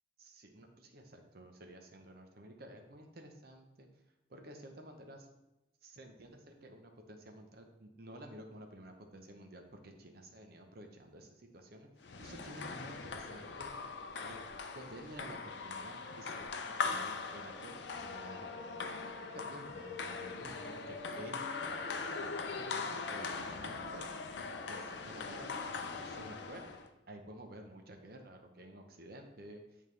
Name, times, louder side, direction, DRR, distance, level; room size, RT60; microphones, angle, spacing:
voice 1, 0.2-3.9 4.3-5.3 5.8-11.9 12.2-13.7 14.2-14.4 14.7-18.8 19.3-24.1 24.7-25.6 26.0-26.7 27.1-29.6, right 1 dB, 50° right, 4 dB, 0.8 m, -51 dB
sound 1, 12.0-26.9, left 4 dB, 60° left, 0.5 m, -41 dB
8.8 x 3.6 x 3.2 m, 0.94 s
head